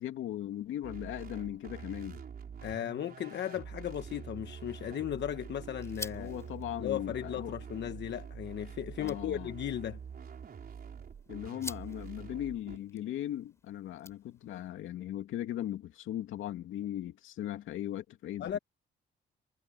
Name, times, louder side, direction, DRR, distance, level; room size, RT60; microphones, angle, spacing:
voice 1, 0.0-2.2 6.1-7.6 9.0-9.5 11.3-18.6, left 12 dB, 85° left, 2.5 m, -38 dB
sound 1, 0.8-12.8, right 7 dB, 50° right, 4.1 m, -46 dB
voice 2, 2.6-6.3 6.8-10.0 18.4-18.6, left 10 dB, 60° left, 1.1 m, -36 dB
sound 2, 4.4-14.7, left 2 dB, 15° left, 4.7 m, -51 dB
cardioid pair, 90°, 20 cm